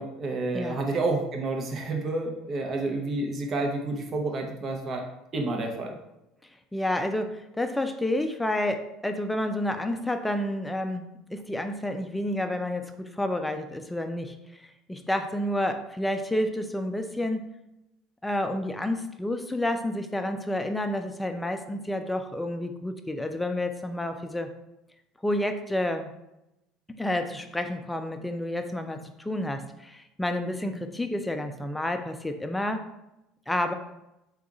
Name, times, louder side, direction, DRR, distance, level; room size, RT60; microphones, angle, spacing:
voice 1, 0.0-5.0 5.3-6.0, right 2 dB, 40° right, 2 dB, 0.8 m, -29 dB
voice 2, 6.7-11.0 11.3-14.6 14.9-17.5 18.2-24.5 25.2-26.1 27.0-32.9 33.5-33.7, left 1 dB, 10° left, 6 dB, 0.4 m, -30 dB
3.5 x 2.4 x 3.9 m, 0.89 s
supercardioid pair, 85°, 0 cm